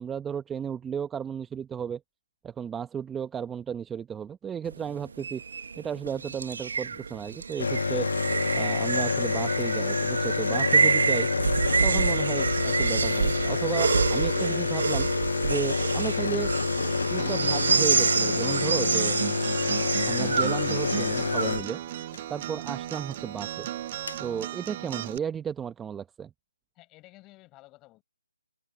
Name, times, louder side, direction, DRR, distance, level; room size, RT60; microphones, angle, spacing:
voice 1, 0.0-2.0 2.4-5.4 5.8-8.1 8.5-11.3 11.8-15.1 15.4-16.5 17.1-19.2 20.1-21.8 22.3-23.7 24.2-26.3, right 8 dB, 10° right, 0.9 m, -34 dB
sound 1, 4.7-21.6, right 5 dB, 60° right, 1.5 m, -28 dB
sound 2, 7.6-22.2 23.5-23.6 23.8-24.3, left 5 dB, 60° left, 0.4 m, -28 dB
Acoustic guitar, 17.2-25.2, right 13 dB, 30° right, 0.6 m, -36 dB
voice 2, 26.8-28.0, left 20 dB, 15° left, 7.3 m, -53 dB
figure-of-eight pair, 155°, 0 cm